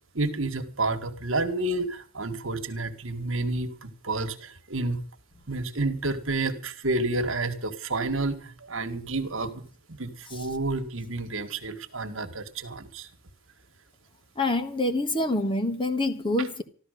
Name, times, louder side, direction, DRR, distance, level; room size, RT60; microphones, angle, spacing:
voice 1, 0.1-5.0 5.5-13.1 16.4-16.5, right 2 dB, 65° right, 1.8 m, -30 dB
voice 2, 14.4-16.6, left 2 dB, 20° left, 1.4 m, -26 dB
14.0 x 13.0 x 6.6 m
head